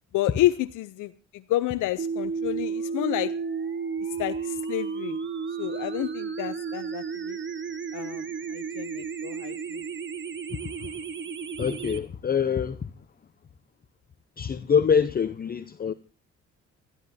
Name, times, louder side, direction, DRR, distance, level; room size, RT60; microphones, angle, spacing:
voice 1, 0.1-3.3 4.2-5.2 5.6-7.4 7.9-9.8, left 15 dB, 80° left, 0.6 m, -30 dB
sound 1, 2.0-12.0, right 6 dB, 40° right, 1.5 m, -33 dB
voice 2, 11.6-12.9 14.4-15.9, left 6 dB, 30° left, 0.7 m, -25 dB
23.5 x 12.5 x 2.7 m
cardioid pair, 90°, 30 cm